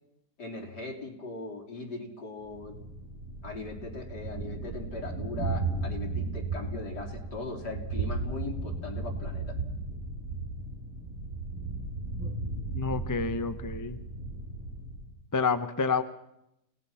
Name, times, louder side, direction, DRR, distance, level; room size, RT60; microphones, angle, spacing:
voice 1, 0.4-2.8 3.4-9.6, left 3 dB, 70° left, 0 dB, 4.4 m, -39 dB
Thunder, 2.5-15.1, right 3 dB, 45° right, 4.3 m, -35 dB
voice 2, 12.7-14.0 15.3-16.0, left 5 dB, 15° left, 9 dB, 0.7 m, -28 dB
29.5 x 18.5 x 5.8 m, 0.83 s
omnidirectional pair, 1.8 m